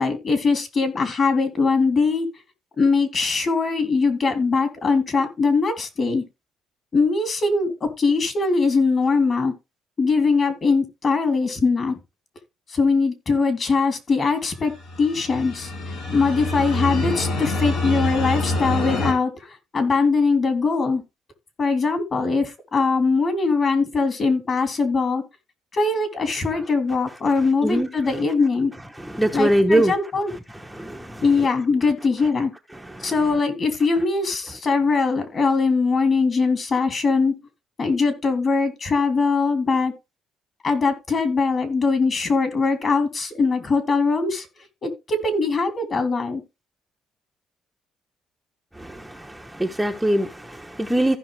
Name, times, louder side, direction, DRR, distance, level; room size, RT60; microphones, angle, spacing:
voice 1, 0.0-2.3 2.8-6.2 6.9-9.5 10.0-12.0 12.7-14.7 15.0-15.7 16.1-21.0 21.6-25.2 25.7-28.7 29.3-30.3 31.2-32.5 33.0-37.3 37.8-39.9 40.6-44.5 44.8-46.4, left 4 dB, 40° left, 3.1 m, -21 dB
sound 1, 14.6-19.1, left 2 dB, 80° left, 5.9 m, -26 dB
voice 2, 29.0-29.9 30.7-31.2 32.7-33.1 48.8-51.2, right 1 dB, 5° right, 1.0 m, -23 dB
15.0 x 5.7 x 3.5 m
cardioid pair, 100°, 0 cm